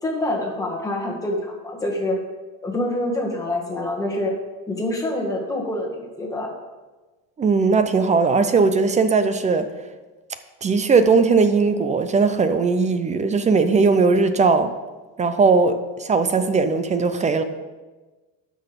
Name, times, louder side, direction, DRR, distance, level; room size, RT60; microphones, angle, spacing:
voice 1, 0.0-2.2 2.6-4.4 4.7-6.5, left 1 dB, 10° left, -2 dB, 1.9 m, -26 dB
voice 2, 7.4-9.7 10.6-14.7 15.2-17.4, right 4 dB, 20° right, 10 dB, 0.5 m, -18 dB
12.0 x 6.2 x 5.2 m, 1.2 s
cardioid pair, 145°, 36 cm